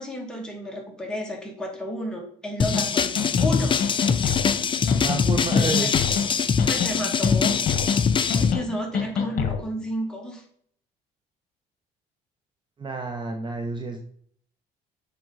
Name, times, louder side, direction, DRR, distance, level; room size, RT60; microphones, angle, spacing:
voice 1, 0.0-3.1 3.4-4.2 5.4-6.0 6.7-7.8 8.2-10.4, equal, 5° left, -1 dB, 2.2 m, -32 dB
sound 1, 2.6-8.5, left 6 dB, 30° left, 0.5 m, -23 dB
sound 2, 2.7-2.8 3.2-3.5 3.8-4.6 4.9-5.2 5.5-6.3 6.6-7.0 7.2-8.0 8.3-8.6 8.9-9.6, left 7 dB, 55° left, 1.4 m, -26 dB
voice 2, 5.0-6.0 12.8-14.0, right 3 dB, 30° right, 5 dB, 0.9 m, -30 dB
7.5 x 5.2 x 4.0 m, 0.63 s
cardioid pair, 110°, 17 cm